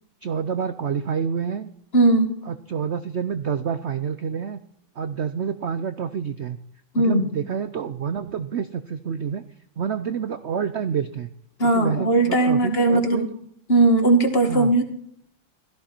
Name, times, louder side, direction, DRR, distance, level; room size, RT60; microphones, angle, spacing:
voice 1, 0.2-1.7 2.5-4.6 5.0-6.6 6.9-9.4 9.8-11.3 11.6-13.3 14.5-14.7, right 7 dB, 80° right, 11 dB, 0.6 m, -28 dB
voice 2, 1.9-2.4 6.9-7.3 11.6-13.3 13.7-14.8, right 2 dB, 30° left, 5 dB, 2.1 m, -18 dB
16.5 x 14.0 x 4.5 m, 0.70 s
omnidirectional pair, 2.0 m